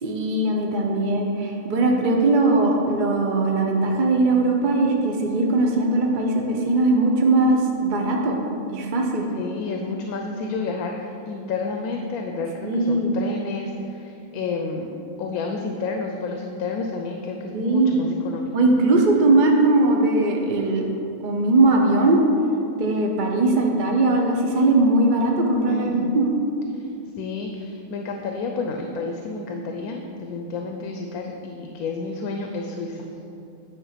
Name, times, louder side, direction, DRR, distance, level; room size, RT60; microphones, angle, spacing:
voice 1, 0.0-8.4 8.7-9.3 12.6-13.2 17.5-17.9 18.5-20.9 21.2-22.2 22.7-26.3, right 2 dB, 45° right, 1 dB, 0.6 m, -20 dB
voice 2, 9.3-14.9 15.2-18.5 25.7-26.2 26.8-26.9 27.2-33.0, left 3 dB, 85° left, 3 dB, 1.1 m, -30 dB
9.5 x 3.7 x 5.6 m, 2.7 s
omnidirectional pair, 1.5 m